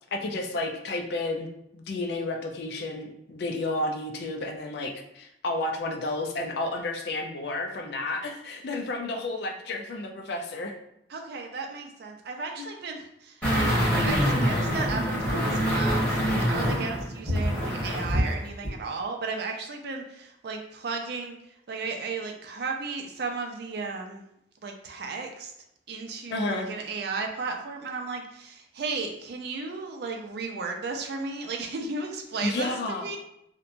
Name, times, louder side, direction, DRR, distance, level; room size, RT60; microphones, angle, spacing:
voice 1, 0.1-1.5 1.7-10.8 12.6-12.7 26.3-26.7 32.4-33.1, left 2 dB, 65° left, 3 dB, 0.4 m, -31 dB
voice 2, 11.1-21.4 21.7-24.2 24.6-25.5 25.9-33.2, right 4 dB, 65° right, 3 dB, 0.4 m, -34 dB
sound 1, 13.4-18.3 18.6-18.7, equal, 5° left, 1.2 m, -25 dB
2.8 x 2.1 x 2.5 m, 0.79 s
head